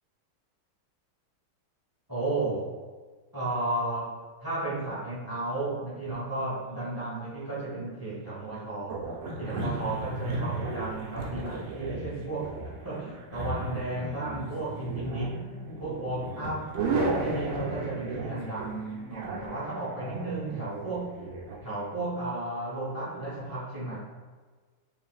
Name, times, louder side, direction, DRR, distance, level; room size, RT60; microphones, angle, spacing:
voice 1, 2.1-2.7 3.3-9.1 9.4-15.5 15.8-21.2 21.6-24.0, right 2 dB, 25° right, -7 dB, 0.5 m, -33 dB
sound 1, 8.9-21.6, right 2 dB, 65° right, 1.2 m, -35 dB
5.1 x 3.3 x 2.3 m, 1.4 s
omnidirectional pair, 2.4 m